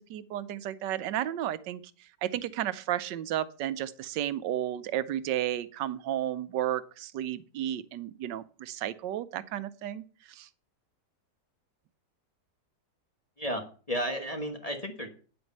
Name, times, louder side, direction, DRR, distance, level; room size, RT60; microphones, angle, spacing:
voice 1, 0.1-1.8 2.2-10.0 10.4-10.5, right 12 dB, 85° right, 15 dB, 1.3 m, -32 dB
voice 2, 13.4-15.1, equal, 20° left, 2 dB, 1.4 m, -33 dB
9.8 x 7.8 x 5.4 m, 0.38 s
omnidirectional pair, 1.9 m